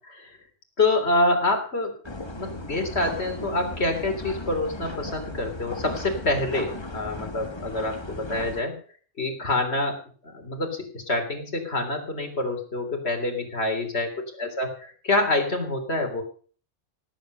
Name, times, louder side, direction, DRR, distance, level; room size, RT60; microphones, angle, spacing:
voice 1, 0.8-2.0 2.3-8.7 9.2-10.0 10.3-16.2, left 2 dB, 55° left, 4 dB, 3.7 m, -26 dB
sound 1, 2.0-8.6, left 1 dB, 20° left, 1.7 m, -36 dB
18.0 x 8.6 x 6.6 m, 0.43 s
omnidirectional pair, 1.3 m